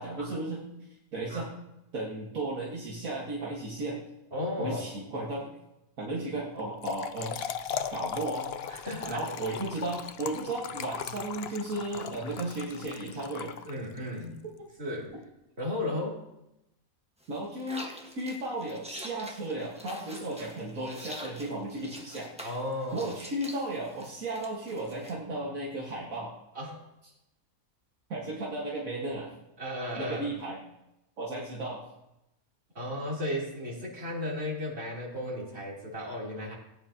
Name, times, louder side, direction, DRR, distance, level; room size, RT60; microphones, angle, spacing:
voice 1, 0.0-1.5 1.9-4.0 4.6-5.5 6.0-7.5 7.9-8.5 9.1-13.5 17.3-17.9 18.2-22.5 22.9-26.3 28.1-29.3 30.0-30.6 31.2-31.8, right 2 dB, 70° right, -5 dB, 2.1 m, -35 dB
voice 2, 4.3-4.9 8.7-9.2 13.7-14.4 14.8-15.1 15.6-16.2 22.4-23.1 26.6-26.8 29.6-30.3 32.8-36.5, left 1 dB, 45° right, -5 dB, 3.7 m, -34 dB
Trickle dribble / Fill (with liquid), 6.6-14.1, left 8 dB, 60° left, 0.7 m, -38 dB
sound 1, 17.2-25.1, equal, 5° right, 1.3 m, -46 dB
17.5 x 9.4 x 2.9 m, 0.88 s
omnidirectional pair, 1.5 m